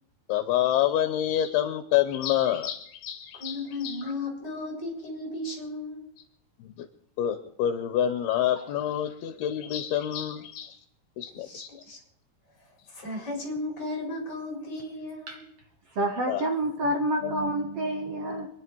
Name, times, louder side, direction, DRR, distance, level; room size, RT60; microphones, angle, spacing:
voice 1, 0.3-4.0 6.6-6.9 7.2-10.8 11.2-11.7 16.3-16.4, left 11 dB, 80° left, 10 dB, 2.8 m, -27 dB
voice 2, 3.3-6.1 11.3-12.0 12.6-15.5, left 2 dB, 25° left, 1 dB, 4.7 m, -35 dB
voice 3, 16.0-18.5, right 1 dB, 55° right, 4 dB, 1.8 m, -28 dB
26.5 x 10.5 x 4.6 m, 0.69 s
omnidirectional pair, 4.6 m